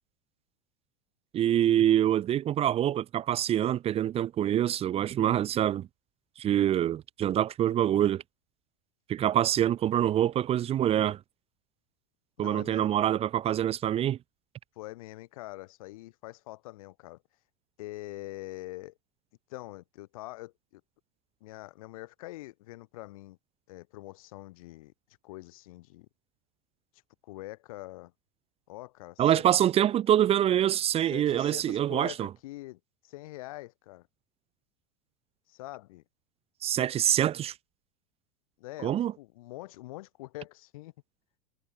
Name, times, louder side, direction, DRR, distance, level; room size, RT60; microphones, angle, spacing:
voice 1, 1.3-5.9 6.4-8.2 9.1-11.2 12.4-14.2 29.2-32.3 36.6-37.5 38.8-39.1, right 11 dB, 35° right, 0.8 m, -25 dB
voice 2, 12.4-12.9 14.8-17.2 17.8-18.9 19.5-20.8 21.4-23.4 23.7-24.9 25.2-26.1 27.2-28.1 28.7-29.7 31.0-34.1 35.5-36.0 38.6-40.9, left 19 dB, 70° left, 3.9 m, -44 dB
hypercardioid pair, 100°, 19 cm